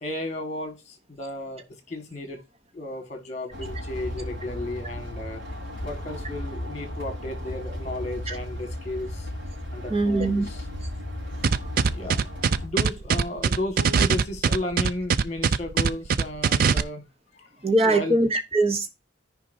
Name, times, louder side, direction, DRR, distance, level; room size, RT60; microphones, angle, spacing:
voice 1, 0.0-2.4 2.7-5.4 5.8-9.3 9.7-10.6 11.9-12.3 12.6-17.1 17.4-17.5 17.8-18.2, left 1 dB, 35° left, 1.7 m, -34 dB
sound 1, 3.5-12.7, left 1 dB, 75° right, 3.6 m, -35 dB
voice 2, 9.9-10.4 17.6-18.9, right 2 dB, 30° right, 0.9 m, -22 dB
sound 2, 11.4-16.8, right 6 dB, 50° right, 0.4 m, -21 dB
13.5 x 5.1 x 2.6 m
head